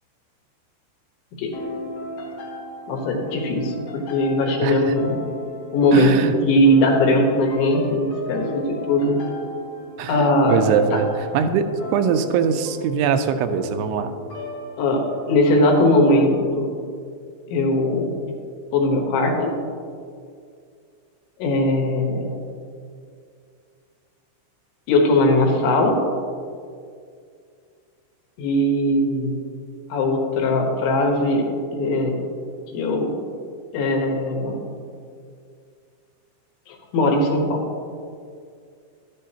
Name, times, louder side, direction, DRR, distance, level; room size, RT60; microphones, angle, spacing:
sound 1, 1.5-15.2, left 2 dB, 60° left, 1.7 m, -36 dB
voice 1, 2.9-5.2 5.7-6.2 6.5-9.2 10.1-10.6 10.9-11.0 14.8-16.7 17.5-18.2 18.7-19.6 21.4-22.3 24.9-26.0 28.4-29.4 29.9-32.2 32.7-33.1 33.7-34.6 36.7-37.6, left 1 dB, 80° left, 1 dB, 3.5 m, -20 dB
voice 2, 4.6-4.9 5.9-6.3 10.0-14.1, right 7 dB, 90° right, 8 dB, 3.0 m, -22 dB
12.0 x 10.0 x 2.9 m, 2.3 s
omnidirectional pair, 5.3 m